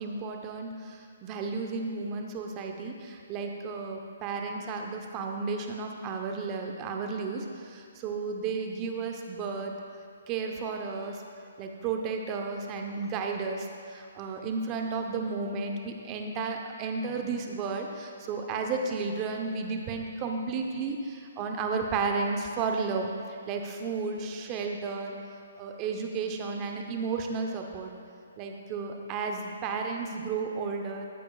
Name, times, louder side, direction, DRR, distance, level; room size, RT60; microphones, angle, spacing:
voice 1, 0.0-9.7 10.3-11.2 11.6-23.1 23.5-25.1 25.6-27.9 28.4-31.1, right 4 dB, 25° right, 3 dB, 0.9 m, -33 dB
13.5 x 8.6 x 2.4 m, 2.3 s
hypercardioid pair, 150°, 0 cm